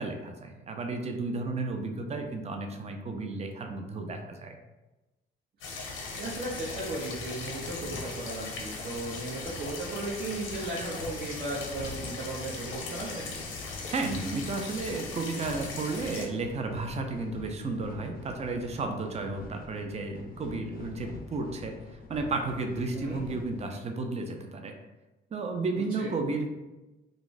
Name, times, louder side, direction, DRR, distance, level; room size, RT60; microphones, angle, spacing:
voice 1, 0.0-4.6 13.9-21.8 22.1-24.8 25.3-26.5, right 3 dB, 35° right, 4 dB, 0.5 m, -33 dB
sound 1, 5.6-16.3, left 4 dB, 85° left, 0.7 m, -39 dB
sound 2, 6.0-23.7, left 3 dB, 45° left, 0.5 m, -47 dB
voice 2, 6.1-13.3 22.9-23.2 26.0-26.1, right 2 dB, 50° right, -6 dB, 0.8 m, -36 dB
2.6 x 2.4 x 3.8 m, 1.1 s
cardioid pair, 90°, 20 cm